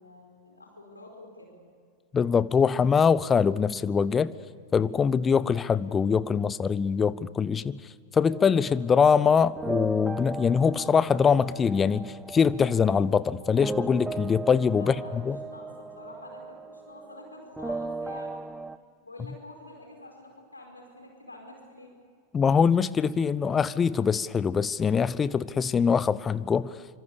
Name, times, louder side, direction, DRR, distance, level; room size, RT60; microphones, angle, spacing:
voice 1, 0.0-1.6 14.7-18.4 19.0-21.9, left 1 dB, 80° left, 4.9 m, -47 dB
voice 2, 2.1-4.3 4.7-7.8 8.1-15.4 22.3-26.8, left 6 dB, 20° left, 0.8 m, -23 dB
sound 1, 8.3-18.8, right 3 dB, 5° right, 0.8 m, -38 dB
25.5 x 25.5 x 6.9 m
figure-of-eight pair, 90°, 0 cm